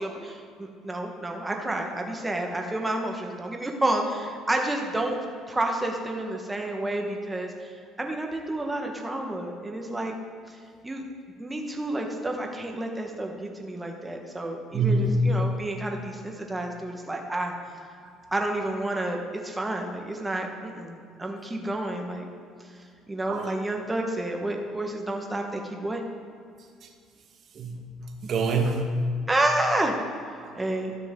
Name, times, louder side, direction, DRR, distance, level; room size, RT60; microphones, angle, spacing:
voice 1, 0.0-5.2 5.5-10.1 10.5-11.0 11.4-17.5 18.3-22.2 23.1-26.0 29.3-29.9 30.5-30.9, right 1 dB, 15° right, 2 dB, 1.2 m, -30 dB
voice 2, 14.7-15.2 18.0-18.1 23.3-23.5 27.5-27.9 28.2-29.1 30.4-30.5, right 3 dB, 50° right, 3 dB, 1.3 m, -26 dB
12.5 x 6.2 x 3.7 m, 2.3 s
supercardioid pair, 95°, 0 cm